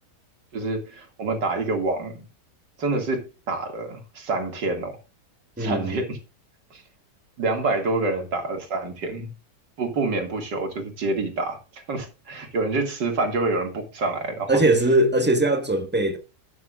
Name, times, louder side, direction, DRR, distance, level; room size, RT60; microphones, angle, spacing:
voice 1, 0.5-2.3 2.8-5.0 5.6-6.2 6.7-6.8 7.4-9.3 9.8-14.6, right 3 dB, 85° right, 2.9 m, -27 dB
voice 2, 5.6-6.0 14.5-16.2, right 2 dB, 5° right, 1.1 m, -20 dB
12.5 x 9.4 x 2.4 m
omnidirectional pair, 1.9 m